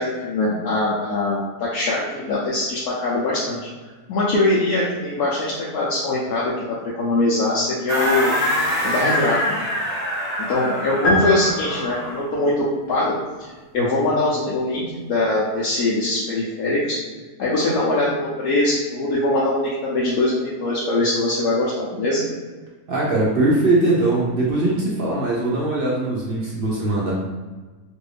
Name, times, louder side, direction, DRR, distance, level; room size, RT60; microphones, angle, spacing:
voice 1, 0.0-3.6 4.1-8.3 8.8-9.7 10.4-14.8 15.1-17.0 17.4-22.2, left 2 dB, 80° left, -7 dB, 1.2 m, -22 dB
sound 1, 7.9-12.3, equal, 30° left, 0.9 m, -25 dB
sound 2, 11.0-12.4, equal, 60° left, 1.1 m, -24 dB
voice 2, 22.9-27.1, right 2 dB, 55° right, -5 dB, 0.6 m, -21 dB
3.0 x 2.6 x 3.2 m, 1.3 s
omnidirectional pair, 1.6 m